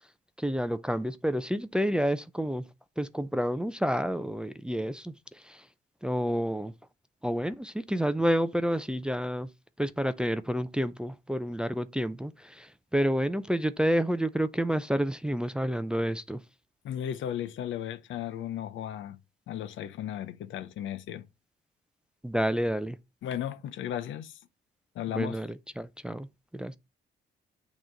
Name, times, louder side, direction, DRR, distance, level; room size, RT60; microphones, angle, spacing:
voice 1, 0.4-2.6 3.0-5.1 5.4-5.6 6.0-6.7 7.2-9.5 9.8-16.4 22.2-23.0 25.1-25.5 25.8-26.3 26.5-26.8, equal, 5° right, 0.4 m, -29 dB
voice 2, 16.8-19.2 19.5-21.3 23.2-24.4 24.9-25.4, left 10 dB, 75° left, 0.7 m, -35 dB
8.6 x 3.0 x 3.9 m
cardioid pair, 90°, 20 cm